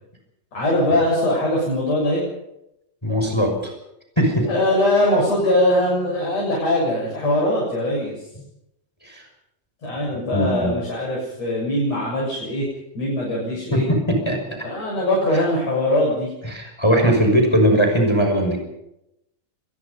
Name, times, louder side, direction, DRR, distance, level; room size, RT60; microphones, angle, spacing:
voice 1, 0.5-2.2 4.3-8.2 9.8-12.7 12.9-13.9 14.6-16.3, left 1 dB, 60° left, -4 dB, 8.5 m, -21 dB
voice 2, 3.0-3.7 4.2-4.5 9.0-9.2 10.3-10.8 13.7-14.4 16.4-18.6, equal, 10° left, 3 dB, 5.9 m, -19 dB
24.5 x 22.0 x 5.5 m, 0.83 s
omnidirectional pair, 3.3 m